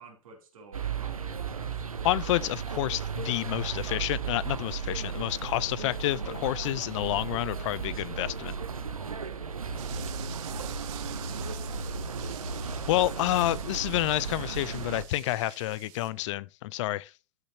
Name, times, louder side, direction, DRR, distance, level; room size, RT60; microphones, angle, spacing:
voice 1, 0.0-2.4, right 4 dB, 75° right, 3.1 m, -51 dB
sound 1, 0.7-15.0, right 5 dB, 90° right, 0.7 m, -35 dB
voice 2, 2.0-8.5 12.9-17.1, left 16 dB, 60° left, 0.5 m, -29 dB
sound 2, 9.8-16.1, right 16 dB, 50° right, 1.0 m, -47 dB
13.5 x 5.6 x 2.8 m
figure-of-eight pair, 85°, 18 cm